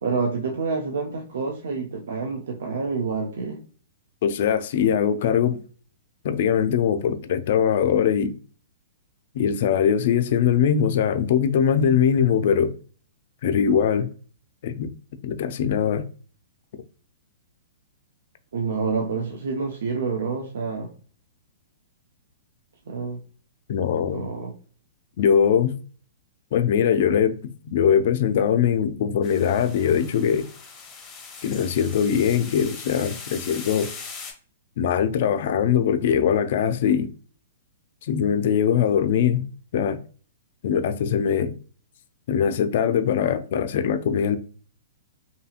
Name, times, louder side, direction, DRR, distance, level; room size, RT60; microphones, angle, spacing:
voice 1, 0.0-3.6 18.5-20.9 22.9-23.2 24.1-24.5, right 4 dB, 80° right, 0.5 m, -28 dB
voice 2, 4.2-5.6 6.2-8.3 9.3-12.7 13.4-14.1 14.6-14.9 15.2-16.0 23.7-24.3 25.2-25.7 26.5-30.5 31.4-33.9 34.8-37.1 38.1-39.5 39.7-40.0 40.6-41.5 42.3-44.4, left 8 dB, 60° left, 0.4 m, -21 dB
sound 1, 29.2-34.3, left 5 dB, 20° left, 0.7 m, -40 dB
2.8 x 2.7 x 2.4 m
hypercardioid pair, 145°, 0 cm